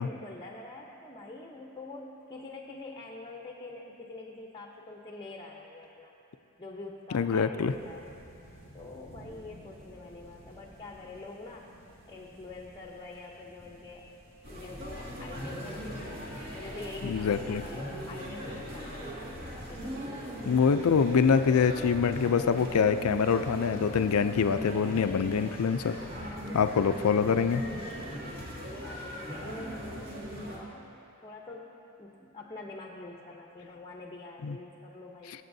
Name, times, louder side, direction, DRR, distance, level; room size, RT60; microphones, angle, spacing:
voice 1, 0.0-6.1 6.6-8.1 8.7-11.7 12.1-14.1 14.5-16.2 16.5-19.4 19.7-20.1 27.9-28.5 28.8-30.9 31.2-35.3, left 2 dB, 20° left, 0 dB, 0.7 m, -45 dB
voice 2, 7.1-7.7 17.0-17.6 20.5-26.0 26.5-27.6 34.4-34.6, left 6 dB, 75° left, 10 dB, 0.4 m, -25 dB
sound 1, 7.6-14.8, equal, 30° right, 3.0 m, -54 dB
sound 2, 14.4-30.6, equal, 50° right, 2.0 m, -39 dB
23.5 x 8.1 x 2.7 m, 2.8 s
head